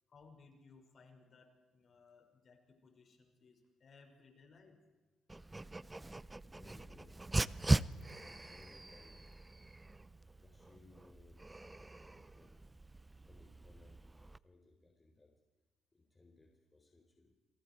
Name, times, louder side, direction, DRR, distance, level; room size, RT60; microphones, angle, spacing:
voice 1, 0.1-4.8, left 4 dB, 50° left, 3 dB, 5.8 m, -62 dB
Dog, 5.3-14.4, right 2 dB, 15° right, 0.6 m, -40 dB
voice 2, 6.4-7.2 8.2-9.4 10.4-12.6 13.2-15.4 15.9-17.3, left 2 dB, 20° left, 2 dB, 4.1 m, -64 dB
28.0 x 27.0 x 4.7 m, 1.2 s
cardioid pair, 90°, 0 cm